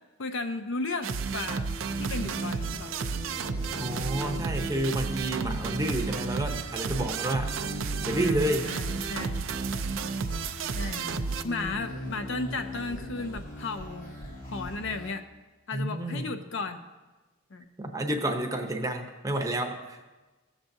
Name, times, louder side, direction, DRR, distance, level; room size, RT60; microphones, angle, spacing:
voice 1, 0.2-2.9 3.8-3.9 8.1-9.4 10.8-11.1 11.4-14.1 14.5-15.2 15.7-16.8 17.5-17.6, left 3 dB, 65° left, 8 dB, 0.6 m, -35 dB
sound 1, 1.0-11.4, right 5 dB, 70° right, 0.5 m, -32 dB
sound 2, 1.4-15.1, left 1 dB, 45° left, 2.2 m, -41 dB
voice 2, 3.8-7.5 8.0-8.7 15.7-16.3 17.8-20.0, right 1 dB, 15° right, 3 dB, 0.8 m, -30 dB
16.0 x 7.2 x 2.7 m, 1.2 s
head